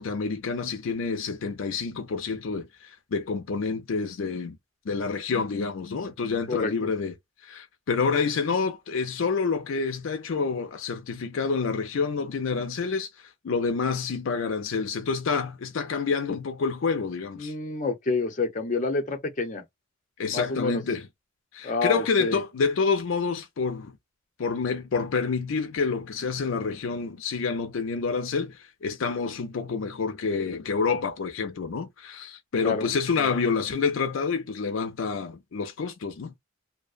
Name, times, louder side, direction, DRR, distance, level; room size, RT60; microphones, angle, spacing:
voice 1, 0.0-4.6 4.9-7.1 7.4-17.5 20.2-21.1 21.5-23.9 24.4-36.3, left 5 dB, 75° left, 0.4 m, -28 dB
voice 2, 6.5-6.9 17.4-19.6 20.3-20.8 21.6-22.4 32.6-32.9 33.2-33.4, left 3 dB, 40° left, 0.7 m, -28 dB
2.7 x 2.1 x 2.4 m
head